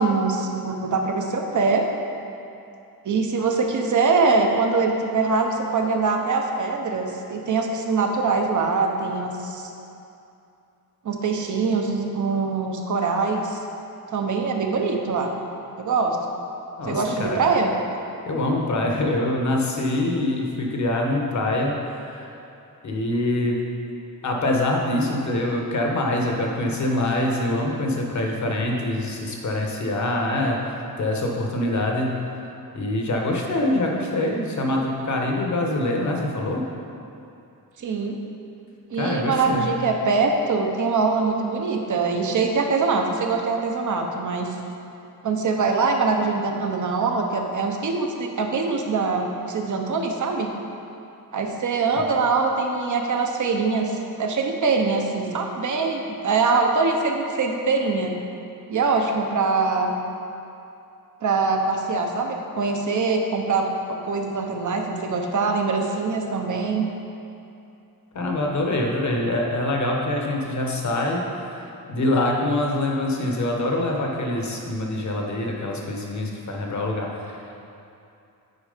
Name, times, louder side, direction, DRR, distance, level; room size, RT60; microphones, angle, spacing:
voice 1, 0.0-1.8 3.0-9.7 11.0-13.6 14.1-15.3 15.8-16.3 16.9-17.7 37.8-38.2 38.9-44.6 45.2-50.5 51.3-58.2 58.7-59.9 61.2-66.9, right 4 dB, 55° right, 3 dB, 1.0 m, -23 dB
voice 2, 16.8-17.4 18.2-22.3 22.8-23.6 24.2-32.1 32.7-36.6 39.0-39.7 68.1-71.2 71.6-77.4, left 1 dB, 50° left, 0 dB, 1.3 m, -24 dB
9.4 x 4.6 x 5.2 m, 2.7 s
cardioid pair, 100°, 37 cm